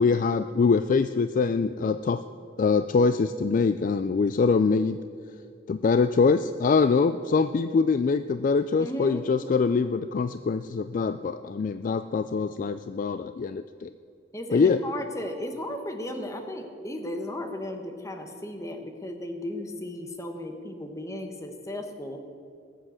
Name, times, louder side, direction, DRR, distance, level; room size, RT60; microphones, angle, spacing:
voice 1, 0.0-2.2 2.6-5.0 5.7-13.9 14.5-14.8, left 4 dB, 45° left, 12 dB, 0.3 m, -24 dB
voice 2, 8.8-9.2 14.3-22.2, left 1 dB, 15° left, 5 dB, 1.1 m, -35 dB
19.0 x 7.7 x 6.3 m, 2.4 s
head